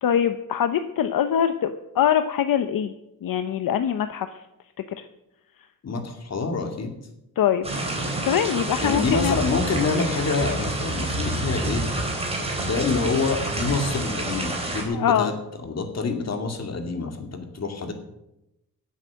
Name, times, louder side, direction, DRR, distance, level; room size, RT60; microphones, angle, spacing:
voice 1, 0.0-2.9 3.2-4.4 5.0-5.1 7.4-7.7 8.2-9.4 14.9-15.3, left 9 dB, 75° left, 9 dB, 0.8 m, -23 dB
voice 2, 5.8-6.9 8.8-11.9 12.6-15.3 15.6-17.9, left 4 dB, 45° left, 5 dB, 2.4 m, -26 dB
sound 1, 7.6-14.8, right 2 dB, 15° right, 3.8 m, -28 dB
17.0 x 8.3 x 6.4 m, 0.88 s
wide cardioid pair, 135°, 35 cm